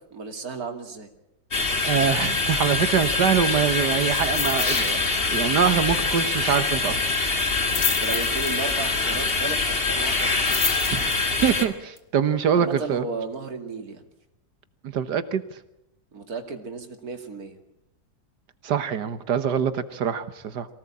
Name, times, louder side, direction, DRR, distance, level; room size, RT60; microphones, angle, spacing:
voice 1, 0.1-1.1 7.8-10.5 12.5-14.0 16.1-17.6, right 4 dB, 60° right, 5 dB, 3.0 m, -34 dB
sound 1, 1.5-11.6, left 3 dB, 35° left, 2.3 m, -24 dB
voice 2, 1.8-7.0 10.9-11.0 11.4-13.1 14.8-15.4 18.6-20.7, right 8 dB, 85° right, 12 dB, 1.9 m, -24 dB
sound 2, 4.1-5.0 5.2-5.5 5.8-5.9 7.4-8.9 10.1-11.4 12.0-12.1, left 6 dB, 65° left, 2.1 m, -30 dB
24.0 x 17.5 x 8.6 m, 0.91 s
omnidirectional pair, 1.8 m